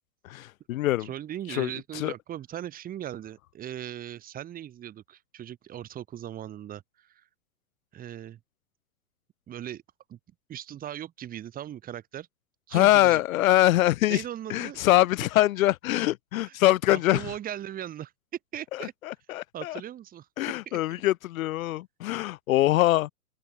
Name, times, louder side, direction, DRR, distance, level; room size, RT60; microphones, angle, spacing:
voice 1, 0.2-1.1 1.6-1.7 1.9-2.1 12.7-14.2 14.5-17.2 19.1-19.8 20.4-23.1, left 15 dB, 65° left, 0.5 m, -23 dB
voice 2, 1.0-7.3 7.9-8.4 9.5-9.8 10.1-10.2 10.5-12.3 12.7-13.2 14.1-14.8 16.4-16.6 16.9-18.1 18.5-18.9 19.5-20.3 20.7-20.8, right 11 dB, 20° right, 2.1 m, -39 dB
open air
hypercardioid pair, 140°, 44 cm